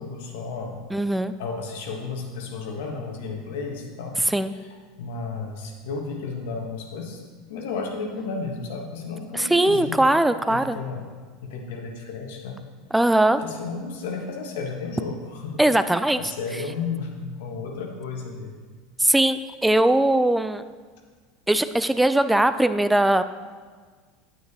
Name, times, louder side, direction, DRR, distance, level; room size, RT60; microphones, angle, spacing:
voice 1, 0.0-0.8 1.4-4.2 4.5-4.7 5.0-7.2 7.5-10.0 10.5-11.1 11.4-12.6 13.4-15.6 16.2-18.5, left 4 dB, 65° left, 2 dB, 1.4 m, -33 dB
voice 2, 0.9-1.3 4.3-4.5 9.3-10.8 12.9-13.4 15.6-16.2 19.0-20.6 21.5-23.2, right 1 dB, 5° right, 12 dB, 0.4 m, -20 dB
9.3 x 9.0 x 2.9 m, 1.5 s
figure-of-eight pair, 75°, 0 cm